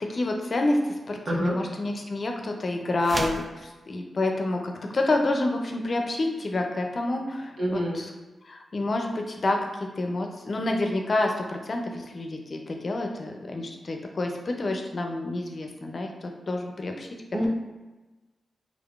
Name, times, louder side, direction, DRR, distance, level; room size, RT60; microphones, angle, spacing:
voice 1, 0.1-0.8 1.1-7.5 7.9-8.1 8.4-9.7 10.0-16.1 16.5-17.1, left 2 dB, 50° left, 3 dB, 0.5 m, -28 dB
Spotlight clear, 3.0-3.5, right 2 dB, 35° right, 0.4 m, -31 dB
voice 2, 7.6-8.0 17.3-17.5, equal, 60° right, -4 dB, 0.9 m, -27 dB
3.6 x 3.5 x 2.4 m, 1.2 s
cardioid pair, 65°, 0 cm